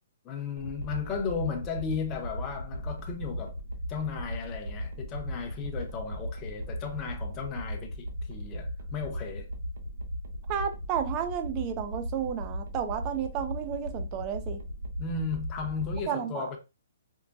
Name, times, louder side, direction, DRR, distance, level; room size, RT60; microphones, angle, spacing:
voice 1, 0.2-3.6 3.9-9.5 15.0-16.6, left 5 dB, 20° left, 0.7 m, -35 dB
sound 1, 0.6-16.0, equal, 85° right, 0.7 m, -37 dB
voice 2, 10.5-14.6 16.1-16.5, right 9 dB, 25° right, 0.4 m, -32 dB
4.5 x 2.1 x 2.5 m
hypercardioid pair, 155°, 0 cm